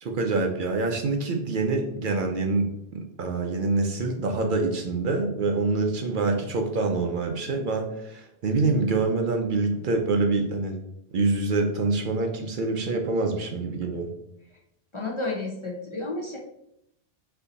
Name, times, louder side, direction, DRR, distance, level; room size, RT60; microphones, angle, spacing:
voice 1, 0.0-10.8 11.1-14.1, right 3 dB, 60° right, 3 dB, 0.7 m, -26 dB
voice 2, 14.9-16.4, left 2 dB, 35° left, -2 dB, 0.6 m, -31 dB
4.4 x 2.7 x 3.9 m, 0.78 s
omnidirectional pair, 1.0 m